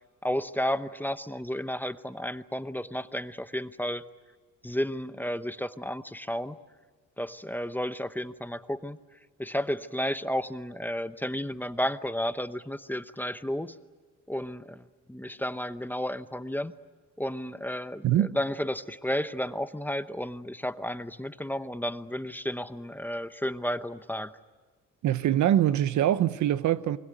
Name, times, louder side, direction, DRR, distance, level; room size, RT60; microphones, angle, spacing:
voice 1, 0.2-4.0 4.6-6.6 7.2-9.0 9.4-13.8 14.3-16.7 17.2-24.3, equal, 5° left, 0.8 m, -32 dB
voice 2, 25.0-27.0, right 11 dB, 70° right, 0.9 m, -23 dB
28.5 x 21.5 x 9.1 m
cardioid pair, 90°, 30 cm